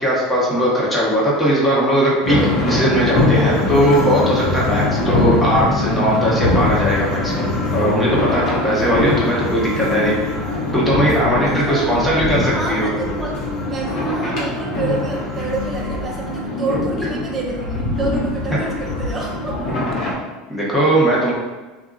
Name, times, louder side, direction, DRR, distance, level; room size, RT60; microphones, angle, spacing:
voice 1, 0.0-2.4 2.7-10.1 10.7-12.9 18.5-18.6 20.5-21.3, right 1 dB, 5° left, -6 dB, 1.1 m, -19 dB
sound 1, 2.2-20.1, left 2 dB, 50° left, 1.0 m, -22 dB
voice 2, 11.4-13.4 13.7-19.8, right 3 dB, 25° right, -1 dB, 0.7 m, -28 dB
2.7 x 2.4 x 2.4 m, 1.2 s
hypercardioid pair, 80°, 0 cm